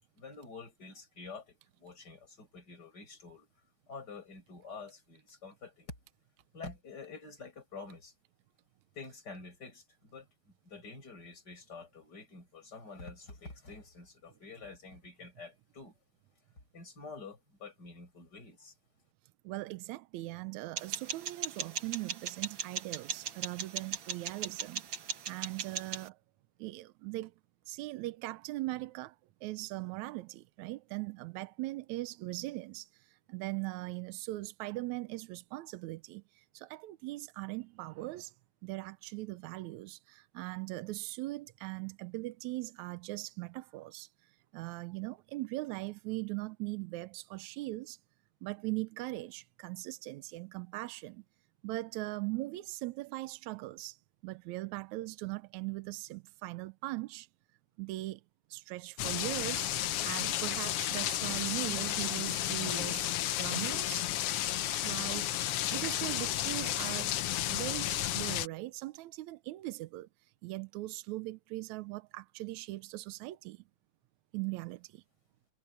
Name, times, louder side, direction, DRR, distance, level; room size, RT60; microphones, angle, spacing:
voice 1, 0.2-3.5 3.9-5.9 6.5-8.1 8.9-10.3 10.6-16.0 16.7-18.7, left 4 dB, 30° left, 7.6 m, -48 dB
voice 2, 19.4-24.8 25.1-26.2 26.6-27.3 27.7-29.2 29.4-38.3 38.6-48.0 48.4-51.2 51.6-57.3 57.8-58.2 58.5-59.7 60.0-63.1 63.4-64.1 64.8-65.3 65.7-67.1 67.5-70.1 70.4-73.6 74.3-75.0, right 19 dB, 80° right, 1.9 m, -40 dB
sound 1, 20.8-26.1, right 7 dB, 50° right, 1.7 m, -39 dB
sound 2, 59.0-68.5, left 13 dB, 80° left, 1.3 m, -32 dB
omnidirectional pair, 3.6 m